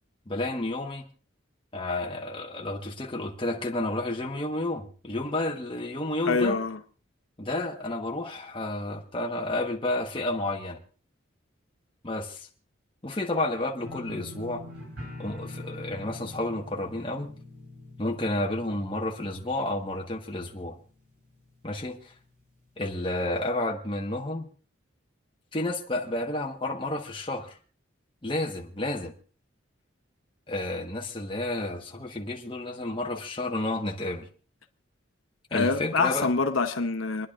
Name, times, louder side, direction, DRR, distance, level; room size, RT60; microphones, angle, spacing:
voice 1, 0.3-1.0 1.7-6.6 7.4-10.8 12.0-12.5 13.0-14.6 15.2-17.3 18.0-20.8 21.6-22.1 22.8-24.5 25.5-27.6 28.2-29.1 30.5-34.3 35.5-36.3, left 2 dB, 25° left, 1.3 m, -31 dB
voice 2, 6.3-6.8 35.5-37.3, left 4 dB, 85° left, 0.8 m, -25 dB
sound 1, 13.8-20.7 21.0-21.5 21.9-22.0, left 2 dB, 80° right, 7.9 m, -44 dB
29.0 x 10.5 x 2.5 m
head